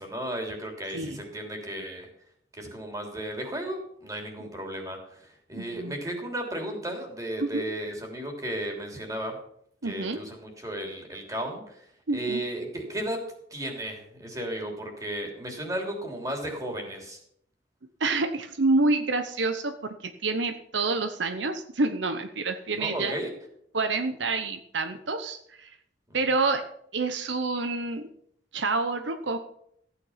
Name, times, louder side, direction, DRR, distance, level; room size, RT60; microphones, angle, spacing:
voice 1, 0.0-2.1 2.5-9.4 9.8-11.9 12.1-13.2 13.5-17.2 22.8-23.3, right 1 dB, 20° right, 2 dB, 3.1 m, -34 dB
voice 2, 5.5-5.9 7.4-7.7 9.8-10.2 12.1-12.4 18.0-23.1 23.7-25.8 26.1-26.6 26.9-28.1 28.5-29.4, right 3 dB, 85° right, 9 dB, 0.9 m, -28 dB
15.0 x 9.0 x 5.7 m, 0.70 s
head